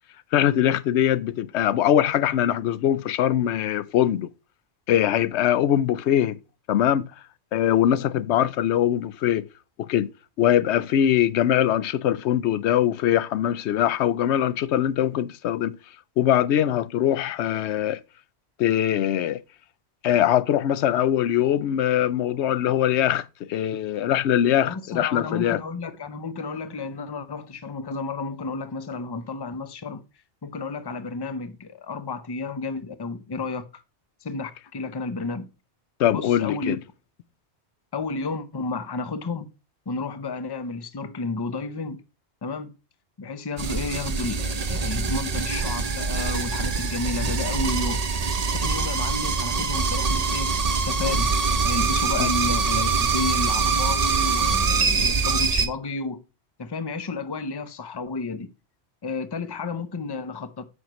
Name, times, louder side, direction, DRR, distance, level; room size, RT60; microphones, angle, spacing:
voice 1, 0.3-4.3 4.9-6.4 6.7-7.1 7.5-9.5 9.8-10.1 10.4-15.8 16.2-18.0 18.6-19.4 20.0-25.6 36.0-36.8 52.2-52.3, left 11 dB, 80° left, 0.8 m, -22 dB
voice 2, 24.7-30.0 30.4-33.8 34.2-35.5 36.1-36.8 37.9-39.5 39.9-42.0 42.4-42.7 43.2-48.3 48.6-50.5 50.8-51.3 51.6-56.2 56.6-58.5 59.0-60.6, left 3 dB, 25° left, 0.6 m, -32 dB
sound 1, 43.6-55.7, right 4 dB, 40° right, 0.8 m, -24 dB
9.1 x 6.3 x 3.0 m
omnidirectional pair, 1.2 m